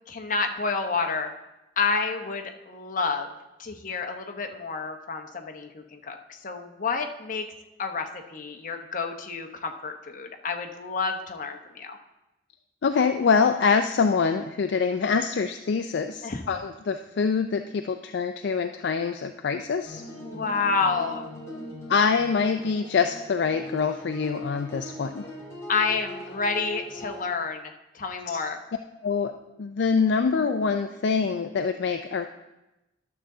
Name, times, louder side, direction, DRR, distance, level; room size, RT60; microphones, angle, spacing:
voice 1, 0.1-1.3 1.8-3.3 3.6-7.4 7.8-12.0 16.2-16.4 20.2-21.2 25.7-28.6, left 4 dB, 45° left, 5 dB, 0.9 m, -29 dB
voice 2, 12.8-20.0 21.9-25.3 28.3-28.4 29.0-32.3, left 5 dB, 65° left, 7 dB, 0.4 m, -25 dB
sound 1, 19.9-27.2, equal, 15° left, 2.6 m, -41 dB
12.0 x 6.7 x 3.8 m, 0.98 s
head